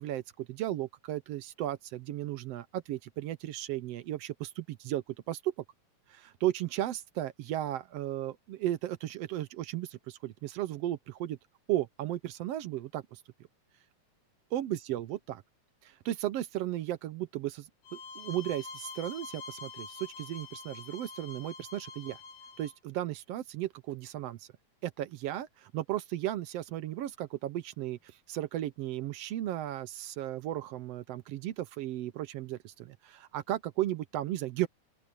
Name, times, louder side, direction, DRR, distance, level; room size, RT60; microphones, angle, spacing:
voice 1, 0.0-5.5 6.1-11.4 11.7-13.2 14.5-15.4 15.8-17.7 17.9-22.2 22.6-24.5 24.8-28.0 28.3-34.7, right 13 dB, 70° right, 1.6 m, -35 dB
sound 1, 17.8-22.8, left 4 dB, 80° left, 8.1 m, -46 dB
open air
omnidirectional pair, 3.5 m